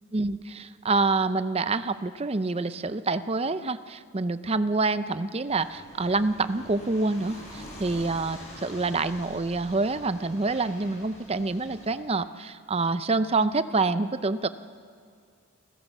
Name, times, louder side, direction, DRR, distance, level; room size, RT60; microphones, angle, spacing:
voice 1, 0.1-14.5, right 3 dB, 25° right, 13 dB, 0.5 m, -27 dB
sound 1, 5.5-11.9, equal, 30° left, 6.9 m, -46 dB
28.5 x 15.0 x 7.3 m, 2.2 s
head